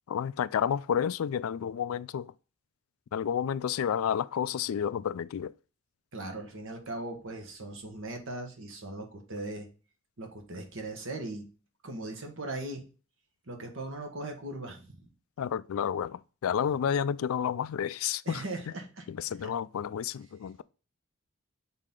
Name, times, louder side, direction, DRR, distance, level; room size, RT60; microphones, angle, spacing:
voice 1, 0.1-2.3 3.1-5.5 15.4-18.4 19.1-20.6, left 8 dB, 75° left, 0.3 m, -30 dB
voice 2, 6.1-9.7 10.2-11.5 11.8-12.9 13.5-15.1 18.2-19.1 19.4-19.5, right 2 dB, 65° right, 1.5 m, -39 dB
6.7 x 4.2 x 3.7 m
head